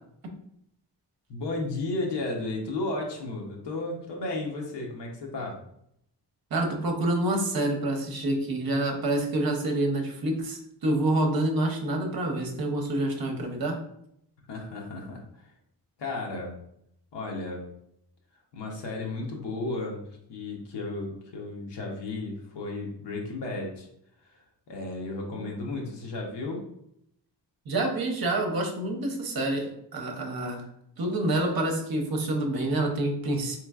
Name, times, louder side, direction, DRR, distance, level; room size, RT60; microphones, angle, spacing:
voice 1, 1.3-5.6 14.5-15.5 16.0-16.6 17.1-17.7 18.5-20.0 20.3-23.9 24.3-24.4 24.7-26.6, left 2 dB, 75° left, 0 dB, 0.9 m, -34 dB
voice 2, 6.5-13.8 25.3-25.6 27.7-30.7 31.0-33.6, right 1 dB, 55° right, 3 dB, 0.8 m, -27 dB
3.8 x 3.0 x 2.3 m, 0.74 s
wide cardioid pair, 145°, 42 cm